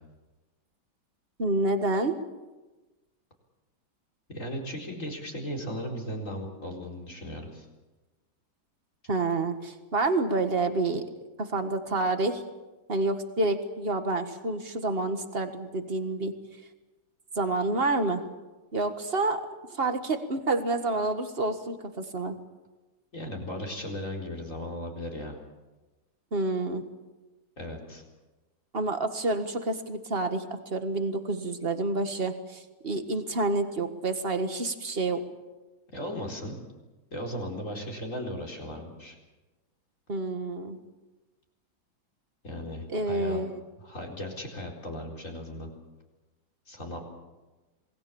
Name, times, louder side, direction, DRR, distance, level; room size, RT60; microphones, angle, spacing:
voice 1, 1.4-2.2 9.1-11.1 11.4-12.4 12.9-16.4 17.4-18.2 18.7-22.4 26.3-26.8 28.7-35.2 40.1-40.8 42.9-43.6, right 2 dB, 30° right, 8 dB, 1.8 m, -28 dB
voice 2, 4.3-7.7 23.1-25.4 27.6-28.0 35.9-36.6 37.1-39.2 42.4-43.4 43.8-45.7 46.7-47.0, equal, 40° left, 0 dB, 4.7 m, -36 dB
27.5 x 20.0 x 7.2 m, 1.1 s
omnidirectional pair, 2.2 m